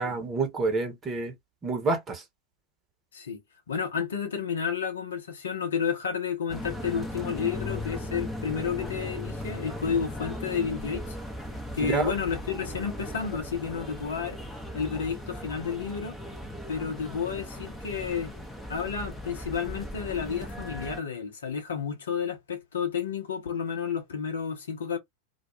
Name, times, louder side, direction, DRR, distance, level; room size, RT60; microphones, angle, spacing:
voice 1, 0.0-1.3 1.6-2.2 11.8-12.1, right 4 dB, 25° right, 0.9 m, -28 dB
voice 2, 3.7-11.2 11.7-14.4 14.7-16.2 16.7-18.3 18.7-25.0, left 6 dB, 65° left, 0.8 m, -31 dB
sound 1, 6.5-21.0, left 1 dB, 10° left, 0.7 m, -38 dB
2.3 x 2.2 x 3.0 m
figure-of-eight pair, 90°, 0 cm